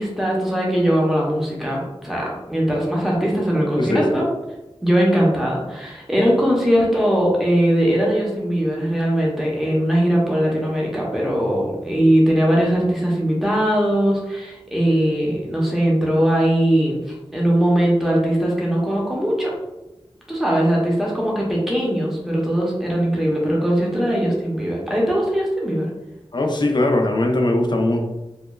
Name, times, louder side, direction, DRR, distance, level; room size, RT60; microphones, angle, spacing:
voice 1, 0.0-4.3 4.8-17.0 17.3-19.5 20.3-25.9, equal, 5° right, -3 dB, 0.6 m, -20 dB
voice 2, 3.8-4.3 26.3-28.0, left 1 dB, 45° left, 3 dB, 0.4 m, -20 dB
2.9 x 2.2 x 2.2 m, 0.98 s
wide cardioid pair, 75°, 11 cm